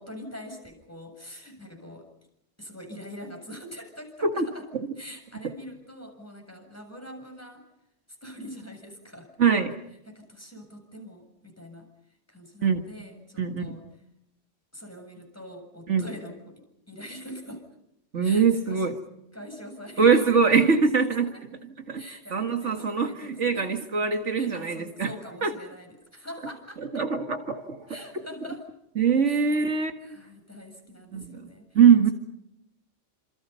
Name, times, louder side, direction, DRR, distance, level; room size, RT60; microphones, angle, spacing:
voice 1, 0.0-2.1 2.6-4.6 5.0-7.6 8.2-9.3 10.1-11.9 12.3-13.8 14.7-17.7 18.2-18.9 19.3-20.7 21.0-21.4 21.9-23.8 24.3-26.8 27.9-28.6 29.3-29.5 30.0-31.8, equal, 10° left, 7.4 m, -43 dB
voice 2, 9.4-9.8 12.6-12.8 13.4-13.8 15.9-16.1 18.1-18.9 20.0-21.3 21.9-22.0 22.3-25.1 25.4-25.5 26.8-27.9 29.0-30.2 31.1-32.1, right 6 dB, 70° right, 2.2 m, -23 dB
30.0 x 27.5 x 5.6 m
omnidirectional pair, 1.3 m